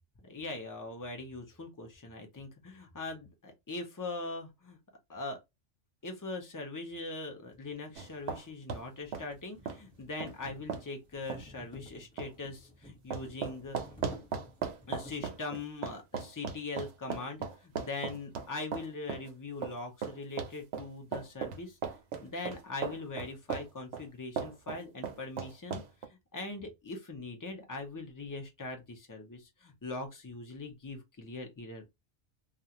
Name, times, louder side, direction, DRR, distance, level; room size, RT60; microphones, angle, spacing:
voice 1, 0.2-4.8 5.1-5.4 6.0-13.8 14.9-21.8 22.2-25.8 26.1-31.9, left 3 dB, 20° left, 0.5 m, -41 dB
sound 1, 7.4-15.5, left 1 dB, 5° left, 1.1 m, -53 dB
sound 2, 8.0-8.4 8.7-8.8 9.1-9.3 9.7-9.8 10.2-10.3 10.7-10.8 11.3-11.4 12.2-12.3 13.1-19.3 19.6-23.7 23.9-24.0 24.4-26.1, right 6 dB, 80° right, 0.9 m, -37 dB
2.4 x 2.3 x 2.8 m
omnidirectional pair, 1.2 m